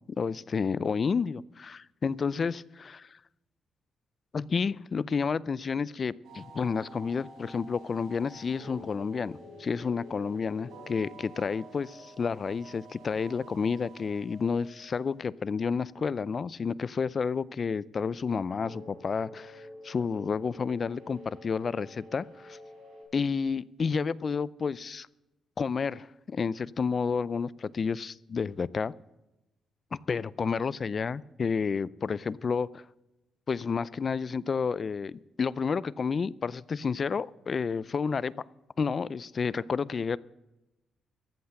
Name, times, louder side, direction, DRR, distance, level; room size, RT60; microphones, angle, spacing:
voice 1, 0.2-3.2 4.3-22.6 23.1-25.1 25.6-28.9 29.9-32.8 33.5-38.4 38.8-40.2, left 5 dB, 35° left, 0.4 m, -30 dB
sound 1, 6.2-15.4 18.6-23.0, equal, 85° right, 4.1 m, -49 dB
14.0 x 8.0 x 7.6 m
cardioid pair, 125°, 0 cm